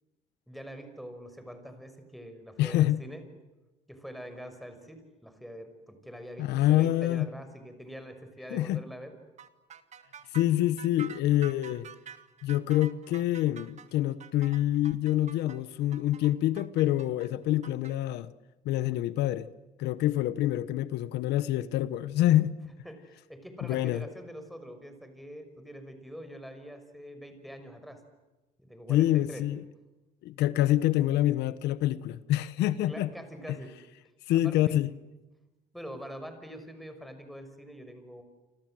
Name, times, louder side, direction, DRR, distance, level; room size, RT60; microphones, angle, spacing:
voice 1, 0.5-3.3 3.9-9.2 22.8-28.0 28.6-29.4 32.9-33.7 34.3-34.8 35.7-38.2, equal, ahead, 6.1 m, -44 dB
voice 2, 2.6-3.0 6.4-7.3 8.5-8.8 10.3-11.9 12.4-18.3 18.6-19.5 19.8-22.6 23.7-24.0 28.9-29.6 30.2-33.1 34.3-34.9, left 14 dB, 85° left, 1.1 m, -26 dB
sound 1, 9.4-17.9, right 8 dB, 40° right, 2.0 m, -48 dB
29.5 x 26.0 x 7.8 m
cardioid pair, 110°, 17 cm